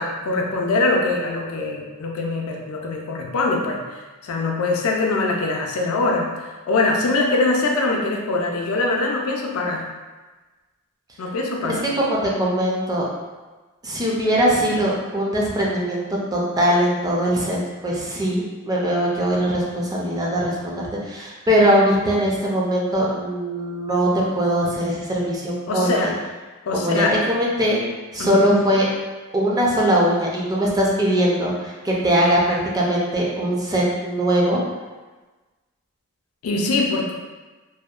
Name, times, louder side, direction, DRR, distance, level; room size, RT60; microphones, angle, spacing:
voice 1, 0.0-9.8 11.2-11.8 25.7-26.1 26.7-27.2 28.2-28.4 36.4-37.1, left 2 dB, 70° left, 0 dB, 0.4 m, -23 dB
voice 2, 11.7-13.0 13.8-16.0 16.3-26.1 26.7-27.8 28.1-28.9 29.3-34.6, equal, 15° right, -4 dB, 0.4 m, -21 dB
2.7 x 2.1 x 2.3 m, 1.2 s
head